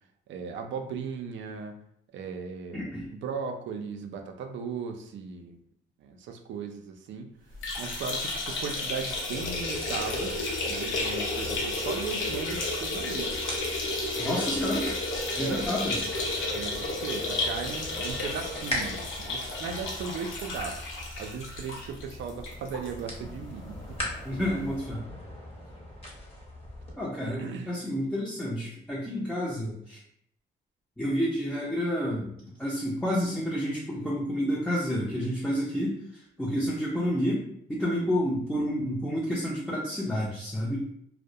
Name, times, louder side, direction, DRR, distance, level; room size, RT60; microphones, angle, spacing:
voice 1, 0.3-1.8 2.1-5.6 6.0-7.3 7.8-13.4 14.1-14.6 15.3-15.7 16.5-24.4 27.3-27.7, right 5 dB, 70° right, 4 dB, 0.4 m, -37 dB
voice 2, 2.7-3.1 14.2-14.9 15.3-16.0 24.2-25.0 27.0-30.0 31.0-40.8, equal, 5° left, -6 dB, 0.5 m, -30 dB
sound 1, 7.5-22.9 23.3-23.4 23.7-23.8 24.8-24.9, left 2 dB, 80° left, 0.6 m, -32 dB
sound 2, 9.3-26.9, left 1 dB, 30° left, 0.9 m, -41 dB
2.2 x 2.0 x 2.7 m, 0.70 s
cardioid pair, 90°, 20 cm